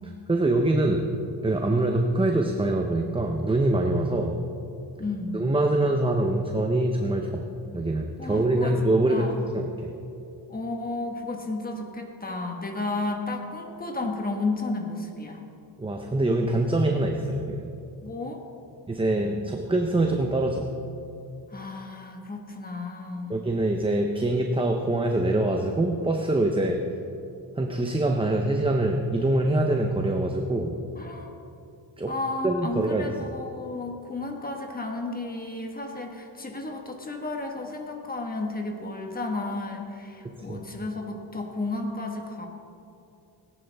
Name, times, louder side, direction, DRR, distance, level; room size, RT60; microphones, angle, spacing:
voice 1, 0.3-1.0 1.4-4.4 5.3-7.4 7.7-9.3 9.5-9.9 15.8-17.7 18.9-20.7 23.3-26.8 27.6-30.8 32.0-32.1 32.4-33.1 40.2-40.6, right 2 dB, 10° right, 3 dB, 0.7 m, -24 dB
voice 2, 5.0-5.4 8.2-8.8 9.1-9.4 10.5-15.4 18.0-18.4 21.5-23.4 31.0-31.3 32.1-42.5, left 2 dB, 20° left, 3 dB, 1.4 m, -33 dB
17.5 x 10.5 x 3.5 m, 2.7 s
cardioid pair, 125°, 43 cm